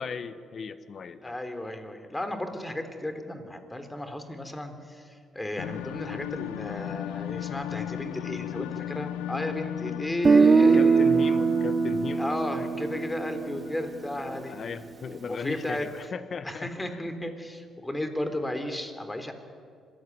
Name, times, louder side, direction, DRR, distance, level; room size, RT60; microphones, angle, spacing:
voice 1, 0.0-1.3 10.7-12.3 14.3-17.0, left 5 dB, 55° left, 13 dB, 1.3 m, -37 dB
voice 2, 1.2-11.1 12.2-14.6 15.3-15.9 16.4-19.3, left 1 dB, 15° left, 8 dB, 3.6 m, -34 dB
sound 1, 5.6-14.9, left 12 dB, 85° left, 0.5 m, -37 dB
Guitar, 10.2-14.2, right 5 dB, 40° right, 0.8 m, -22 dB
25.5 x 15.5 x 9.4 m, 2.2 s
supercardioid pair, 55°, 0 cm